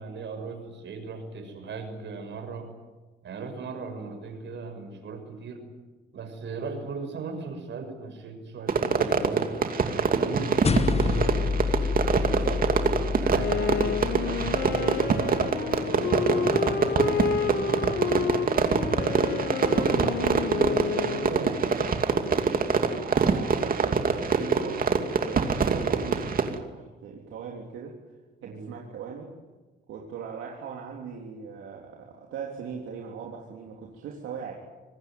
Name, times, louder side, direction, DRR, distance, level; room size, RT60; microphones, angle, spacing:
voice 1, 0.0-2.7 3.2-5.7 6.1-9.5 9.9-11.6 12.2-18.0 18.8-22.0 28.4-28.7, right 4 dB, 65° right, 7 dB, 6.3 m, -38 dB
Fireworks, 8.7-26.6, right 5 dB, 45° right, 2.6 m, -25 dB
sound 1, 10.6-15.3, left 4 dB, 30° left, 1.5 m, -28 dB
Wind instrument woodwind instrument, 13.3-21.7, left 7 dB, 55° left, 1.9 m, -30 dB
voice 2, 22.9-25.0 25.2-28.0 28.4-29.3 29.9-34.5, right 6 dB, 85° right, -1 dB, 3.5 m, -39 dB
26.5 x 19.5 x 9.4 m, 1.2 s
cardioid pair, 90°, 20 cm